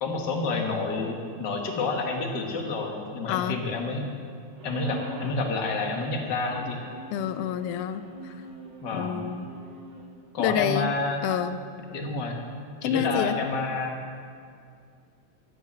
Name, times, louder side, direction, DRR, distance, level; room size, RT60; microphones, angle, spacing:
voice 1, 0.0-4.1 4.6-6.8 8.8-9.2 10.3-11.2 11.9-12.4 12.8-13.9, left 3 dB, 45° left, 2 dB, 1.7 m, -29 dB
voice 2, 3.3-3.6 7.1-8.3 8.9-9.5 10.4-10.9 11.2-11.6 12.8-13.4, left 9 dB, 85° left, 12 dB, 1.3 m, -28 dB
sound 1, 4.6-5.5 6.4-10.1, right 1 dB, 65° right, 2.8 m, -42 dB
12.0 x 9.9 x 7.2 m, 2.3 s
omnidirectional pair, 3.3 m